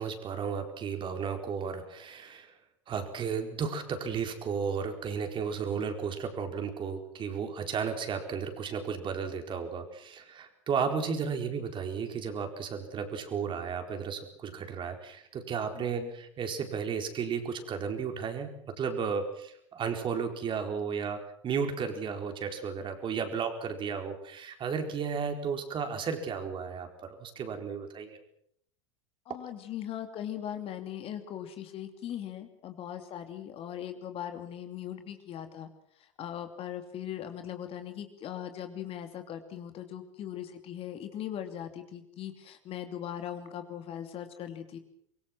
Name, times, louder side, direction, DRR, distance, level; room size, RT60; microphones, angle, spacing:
voice 1, 0.0-2.5 2.9-28.2, right 6 dB, 30° right, 5 dB, 4.4 m, -34 dB
voice 2, 15.7-16.1 29.3-35.7 36.0-44.8, left 10 dB, 35° left, 8 dB, 2.8 m, -39 dB
25.0 x 23.0 x 6.2 m, 0.69 s
figure-of-eight pair, 85°, 16 cm